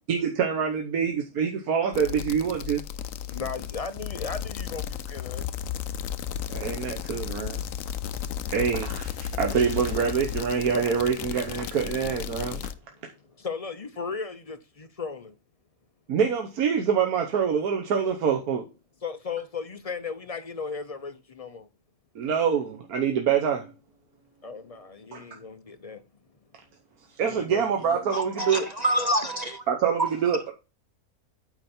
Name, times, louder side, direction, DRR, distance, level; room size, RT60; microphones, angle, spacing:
voice 1, 0.1-2.8 6.5-7.6 8.5-12.7 16.1-18.6 22.1-23.7 25.1-25.2 27.2-28.6 29.7-30.5, right 7 dB, 85° right, 1.5 m, -25 dB
sound 1, 1.9-12.7, left 9 dB, 70° left, 1.0 m, -34 dB
voice 2, 3.2-5.5 6.8-6.9 13.0-15.3 19.0-21.7 24.4-26.0 27.2-27.7 27.9-28.1, left 5 dB, 40° left, 0.5 m, -36 dB
voice 3, 28.1-29.6 30.0-30.1, right 1 dB, 55° right, 0.4 m, -26 dB
8.9 x 5.1 x 4.3 m
omnidirectional pair, 1.5 m